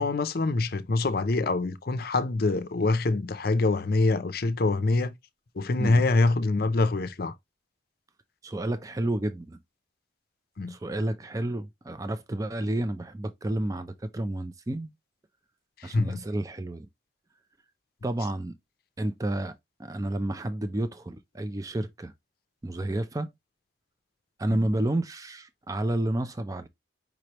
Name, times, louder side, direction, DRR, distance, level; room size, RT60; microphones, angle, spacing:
voice 1, 0.0-5.1 5.6-7.3 10.6-10.8 15.8-16.2 24.5-24.6, left 3 dB, 55° left, 0.6 m, -25 dB
voice 2, 8.4-9.6 10.7-14.9 15.8-16.9 18.0-18.5 19.0-19.5 19.8-22.1 22.6-23.3 24.4-26.7, right 1 dB, 20° right, 0.4 m, -30 dB
5.1 x 3.3 x 2.9 m
head